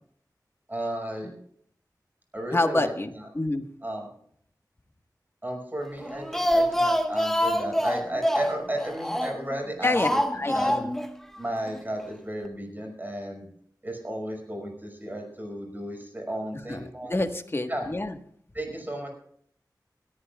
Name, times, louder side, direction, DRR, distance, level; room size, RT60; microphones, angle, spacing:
voice 1, 0.7-1.3 2.3-2.9 3.2-3.3 3.8-4.1 5.4-10.2 10.5-10.7 11.4-13.5 13.8-17.1 17.7-17.9 18.5-19.1, right 1 dB, 25° right, 2 dB, 5.7 m, -33 dB
voice 2, 2.5-3.7 9.8-10.9 16.7-18.1, left 2 dB, 35° left, 6 dB, 1.5 m, -27 dB
Speech, 6.0-9.5 10.0-11.1 11.4-11.5 11.8-11.9, equal, 5° left, 1.4 m, -26 dB
22.0 x 14.5 x 2.4 m, 0.63 s
wide cardioid pair, 75°, 7 cm